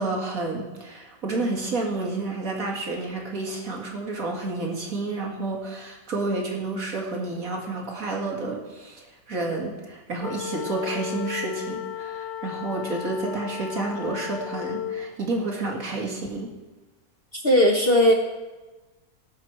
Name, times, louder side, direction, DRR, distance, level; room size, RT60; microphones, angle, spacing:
voice 1, 0.0-16.5, right 2 dB, 55° right, 0 dB, 2.4 m, -30 dB
sound 1, 10.2-15.1, left 10 dB, 70° left, 1.1 m, -34 dB
voice 2, 17.3-18.1, equal, 40° left, 2 dB, 1.1 m, -18 dB
18.0 x 7.4 x 4.6 m, 1.2 s
omnidirectional pair, 1.8 m